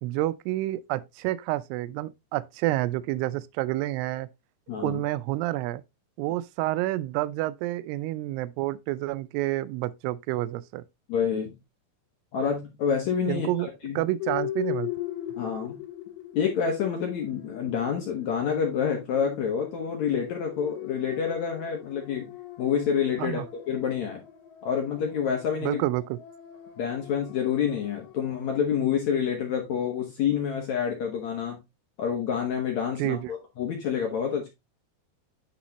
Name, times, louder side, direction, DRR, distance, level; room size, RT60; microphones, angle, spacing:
voice 1, 0.0-4.3 4.8-5.8 6.2-10.8 13.3-13.7 14.0-14.9 23.2-23.5 25.6-26.2 33.0-33.3, right 16 dB, 85° right, 2.4 m, -29 dB
voice 2, 4.7-5.0 11.1-11.5 12.3-13.5 13.8-14.0 15.4-15.8 16.3-22.3 22.6-24.2 24.6-25.8 26.8-31.6 32.0-34.5, left 7 dB, 65° left, 1.8 m, -28 dB
sound 1, 14.2-28.4, left 12 dB, 85° left, 3.5 m, -40 dB
10.0 x 4.1 x 2.9 m
omnidirectional pair, 4.9 m